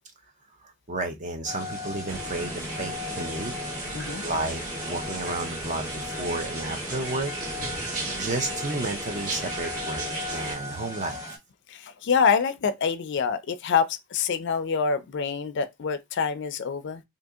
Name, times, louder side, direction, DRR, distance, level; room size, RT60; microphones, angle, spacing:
voice 1, 0.6-2.5 2.8-3.5 4.2-7.3 7.6-7.8 8.1-10.0 10.3-11.4, right 2 dB, 35° right, 0.5 m, -32 dB
sound 1, 1.5-11.4, left 2 dB, 15° right, 1.0 m, -38 dB
sound 2, 2.1-10.5, right 2 dB, 85° right, 1.5 m, -35 dB
voice 2, 3.9-4.2 11.7-17.0, left 6 dB, 55° left, 0.4 m, -26 dB
2.7 x 2.7 x 3.4 m
head